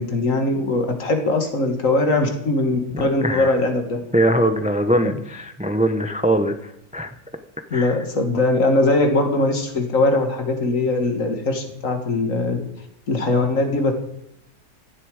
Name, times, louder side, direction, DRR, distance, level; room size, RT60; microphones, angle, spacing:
voice 1, 0.0-4.0 5.0-5.1 7.7-12.6 13.1-13.9, left 2 dB, 55° left, 4 dB, 2.4 m, -21 dB
voice 2, 3.2-3.6 4.1-7.2 7.7-8.0, right 1 dB, 5° right, 8 dB, 0.6 m, -21 dB
16.0 x 11.5 x 5.0 m, 0.77 s
omnidirectional pair, 1.7 m